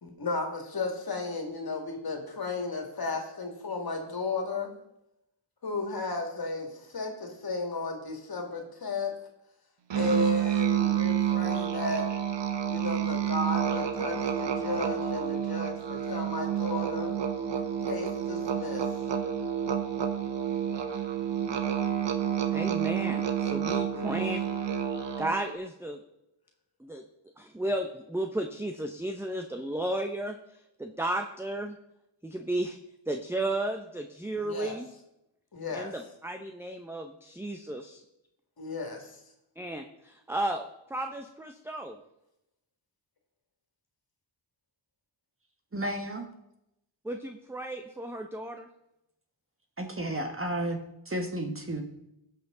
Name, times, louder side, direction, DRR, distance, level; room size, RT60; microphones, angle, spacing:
voice 1, 0.0-4.7 5.6-9.1 9.9-12.1 12.7-17.1 17.6-18.9 23.8-24.2 34.3-34.8 35.5-35.9 38.6-39.2, left 3 dB, 45° left, 3 dB, 2.2 m, -34 dB
Musical instrument, 9.9-25.5, right 9 dB, 60° right, 1.1 m, -29 dB
voice 2, 22.5-24.4 25.2-26.0 26.8-27.0 27.4-30.4 30.8-31.8 32.2-32.8 33.1-34.9 35.7-38.0 39.6-42.0 47.0-48.7, right 1 dB, 5° right, 5 dB, 0.7 m, -33 dB
voice 3, 45.7-46.2 49.8-50.8 51.0-51.8, right 1 dB, 25° right, 4 dB, 1.5 m, -32 dB
16.5 x 6.0 x 3.8 m, 0.85 s
cardioid pair, 70°, 49 cm